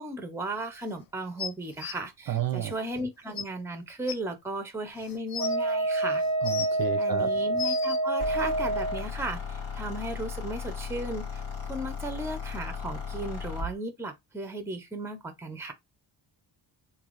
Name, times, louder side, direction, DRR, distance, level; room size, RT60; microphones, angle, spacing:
voice 1, 0.0-6.2 7.0-11.4 11.7-15.7, right 1 dB, 5° right, 0.6 m, -36 dB
sound 1, 1.4-1.9 3.0-3.1 3.4-3.5 4.1-4.2 5.0-5.6 6.2-6.8 7.3-8.0 9.0-9.1, left 8 dB, 50° left, 0.5 m, -35 dB
voice 2, 2.3-2.7 6.4-7.3, right 9 dB, 50° right, 0.5 m, -31 dB
Wind instrument woodwind instrument, 5.4-9.1, right 2 dB, 10° left, 1.0 m, -27 dB
sound 2, 8.2-13.7, left 5 dB, 70° left, 1.8 m, -36 dB
3.3 x 2.8 x 2.5 m
wide cardioid pair, 130°, 48 cm